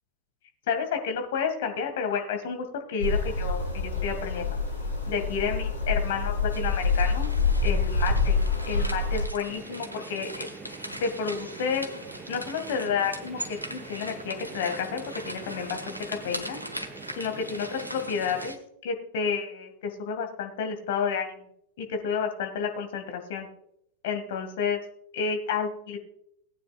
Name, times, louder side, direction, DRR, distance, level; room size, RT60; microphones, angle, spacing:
voice 1, 0.7-4.5 5.1-7.3 7.6-8.4 8.7-10.5 11.0-11.9 12.3-16.6 17.2-18.6 18.8-21.3 21.8-23.5 24.0-24.8 25.1-26.0, left 6 dB, 55° left, 5 dB, 2.0 m, -30 dB
sound 1, 3.0-9.3, left 3 dB, 85° left, 3.2 m, -26 dB
sound 2, 6.5-18.6, equal, 85° right, 1.1 m, -41 dB
sound 3, 9.5-18.5, right 4 dB, 15° right, 0.9 m, -44 dB
18.5 x 9.3 x 2.4 m, 0.75 s
figure-of-eight pair, 90°, 0 cm